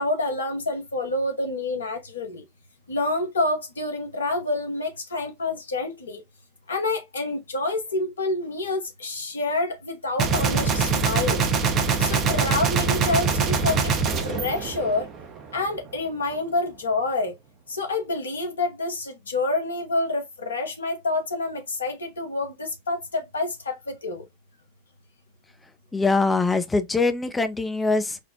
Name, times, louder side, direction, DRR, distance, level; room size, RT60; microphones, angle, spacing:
voice 1, 0.0-2.4 2.9-6.2 6.7-11.4 12.0-13.9 14.2-15.1 15.5-17.3 17.7-24.2, left 2 dB, 70° left, 0.9 m, -27 dB
Gunshot gunfire, 10.2-15.4, right 5 dB, 30° right, 0.6 m, -23 dB
voice 2, 25.9-28.2, left 3 dB, 10° left, 0.4 m, -23 dB
4.1 x 2.0 x 2.7 m
figure-of-eight pair, 90°, 0 cm